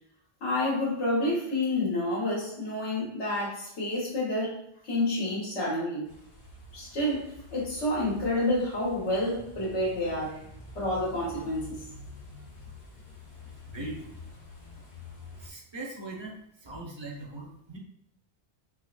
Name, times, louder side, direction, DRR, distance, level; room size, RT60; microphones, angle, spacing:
voice 1, 0.4-4.6 4.8-6.1 6.7-10.5 10.7-11.8, left 1 dB, 85° left, -5 dB, 1.5 m, -29 dB
sound 1, 6.1-15.5, left 2 dB, 50° left, 1.2 m, -47 dB
voice 2, 13.4-14.2 14.8-14.9 15.4-17.8, right 2 dB, 30° right, -2 dB, 0.7 m, -41 dB
3.7 x 2.9 x 2.5 m, 0.75 s
omnidirectional pair, 1.2 m